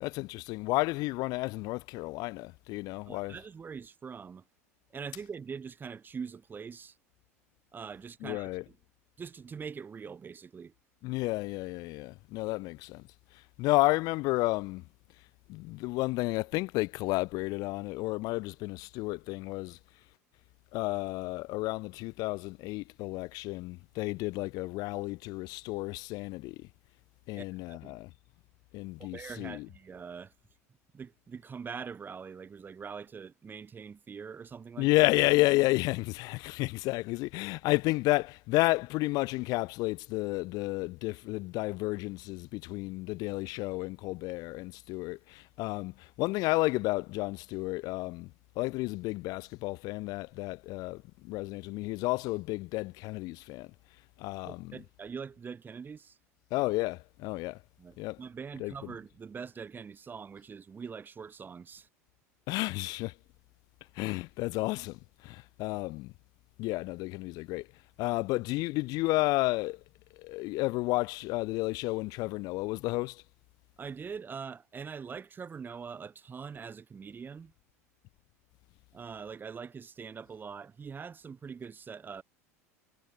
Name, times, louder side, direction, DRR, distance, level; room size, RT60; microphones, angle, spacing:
voice 1, 0.0-3.4 8.2-8.6 11.0-13.0 13.3-14.8 15.5-19.8 20.7-26.7 27.3-28.1 28.7-29.7 34.8-48.3 48.6-53.7 54.2-54.8 56.5-57.6 58.0-58.2 58.6-58.7 62.5-63.1 63.9-65.0 65.2-66.1 66.6-67.7 68.0-69.8 70.2-73.2, left 22 dB, 50° left, 0.7 m, -31 dB
voice 2, 3.1-4.4 4.9-6.9 7.7-8.8 9.2-10.7 27.4-28.0 29.0-30.3 30.9-34.9 54.4-56.2 57.8-61.9 73.8-77.5 78.9-82.2, right 6 dB, 25° right, 2.5 m, -43 dB
hypercardioid pair, 80°, 8 cm